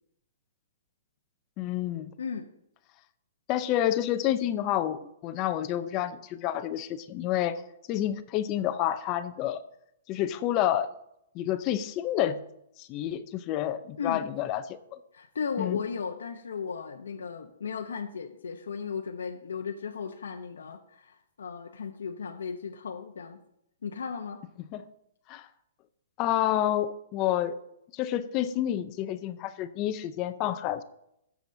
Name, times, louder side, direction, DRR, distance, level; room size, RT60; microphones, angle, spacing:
voice 1, 1.6-2.1 3.5-7.6 7.9-9.6 10.1-10.9 11.3-12.4 12.8-14.8 15.6-15.8 24.7-24.8 25.3-25.5 26.2-27.6 27.9-30.8, left 12 dB, 30° left, 12 dB, 0.6 m, -29 dB
voice 2, 14.0-14.3 15.1-23.4 23.8-24.4, left 6 dB, 90° left, 4 dB, 0.8 m, -36 dB
16.0 x 7.1 x 2.7 m, 0.78 s
hypercardioid pair, 155°, 0 cm